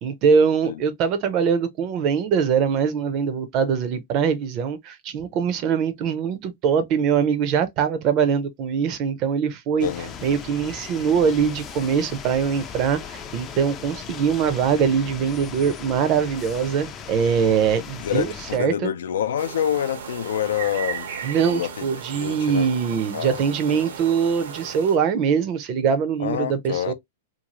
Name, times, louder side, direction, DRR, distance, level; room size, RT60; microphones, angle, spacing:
voice 1, 0.0-18.9 21.2-26.9, right 7 dB, 30° right, 0.5 m, -22 dB
voice 2, 9.8-10.1 18.0-21.1 21.4-21.9 22.1-23.4 26.2-26.9, left 9 dB, 80° left, 0.4 m, -27 dB
sound 1, 9.8-18.6, left 7 dB, 20° left, 0.4 m, -38 dB
sound 2, 19.4-25.0, right 7 dB, 80° right, 0.9 m, -36 dB
2.6 x 2.3 x 2.9 m
supercardioid pair, 160°, 0 cm